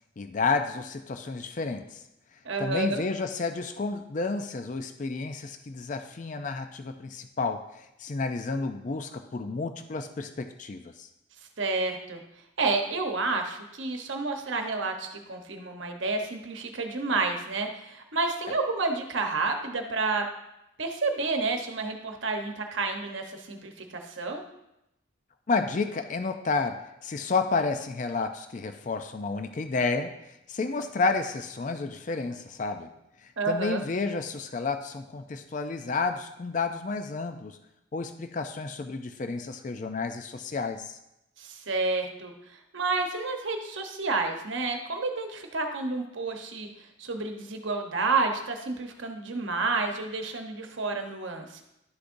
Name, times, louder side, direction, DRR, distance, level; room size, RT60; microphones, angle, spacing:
voice 1, 0.2-2.0 2.6-11.1 25.5-32.9 33.2-37.6 37.9-41.0, left 4 dB, 40° left, 8 dB, 0.4 m, -31 dB
voice 2, 2.4-3.0 11.6-12.2 12.6-20.2 20.8-24.4 33.4-33.8 41.4-46.7 47.0-51.6, right 3 dB, 70° right, 4 dB, 1.0 m, -30 dB
11.0 x 6.5 x 2.6 m, 0.87 s
head